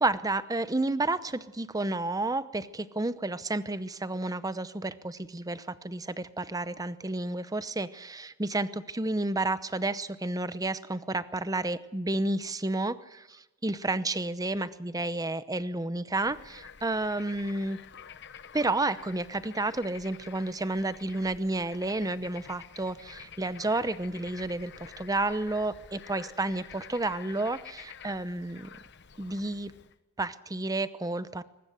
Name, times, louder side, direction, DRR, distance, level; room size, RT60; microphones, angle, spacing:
voice 1, 0.0-17.8 18.5-28.7 29.2-29.7 30.2-31.4, right 2 dB, 15° right, 14 dB, 0.8 m, -31 dB
Bird / Frog, 16.2-30.0, left 7 dB, 55° left, 1.1 m, -49 dB
22.0 x 20.0 x 8.0 m, 1.0 s
head